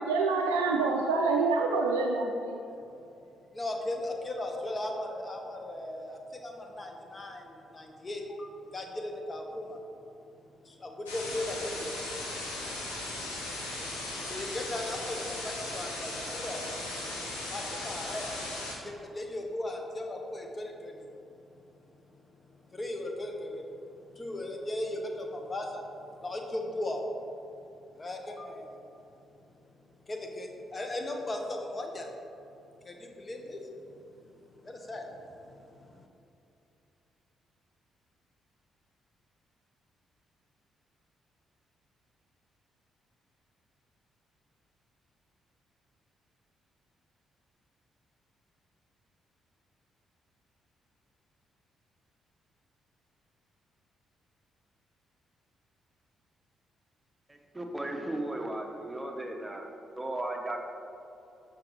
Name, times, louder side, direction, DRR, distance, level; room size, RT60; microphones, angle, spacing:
voice 1, 0.0-2.6, right 3 dB, 80° right, 1 dB, 0.3 m, -27 dB
voice 2, 3.5-10.1 10.6-11.9 12.6-12.7 14.2-16.7 17.5-18.4 18.8-21.2 21.7-21.8 22.1-22.4 22.6-27.0 27.9-28.9 29.6-29.7 30.0-32.1 32.8-36.1, left 1 dB, 30° left, 2 dB, 0.9 m, -38 dB
sound 1, 11.1-18.8, left 2 dB, 85° left, 0.8 m, -37 dB
voice 3, 57.5-60.6, right 1 dB, 15° right, 2 dB, 0.9 m, -35 dB
6.3 x 6.0 x 3.1 m, 2.7 s
hypercardioid pair, 45°, 0 cm